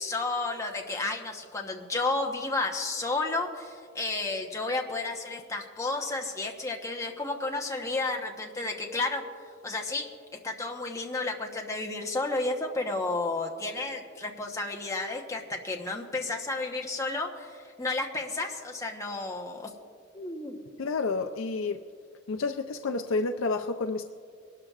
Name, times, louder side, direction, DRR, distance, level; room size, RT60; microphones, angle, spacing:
voice 1, 0.0-9.2 9.6-10.1 10.4-19.7 20.1-20.6, left 3 dB, 15° left, 1 dB, 1.0 m, -32 dB
voice 2, 20.8-21.8 22.3-24.0, left 3 dB, 75° left, 6 dB, 0.5 m, -29 dB
23.5 x 12.5 x 2.4 m, 2.2 s
head